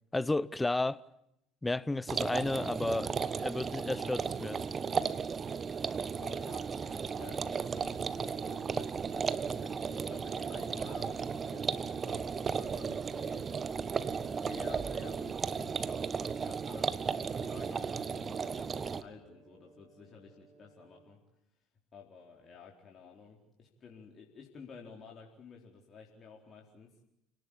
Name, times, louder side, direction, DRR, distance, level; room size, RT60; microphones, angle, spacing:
voice 1, 0.1-1.0 1.6-4.6, left 2 dB, 15° left, 0.9 m, -32 dB
sound 1, 2.1-19.0, right 6 dB, 35° right, 1.3 m, -35 dB
voice 2, 6.2-13.5 14.2-15.9 16.2-21.2 21.9-26.9, left 5 dB, 40° left, 4.2 m, -52 dB
Brass instrument, 17.1-21.3, right 4 dB, 55° right, 6.1 m, -63 dB
29.5 x 18.5 x 8.8 m
hypercardioid pair, 70°, 0 cm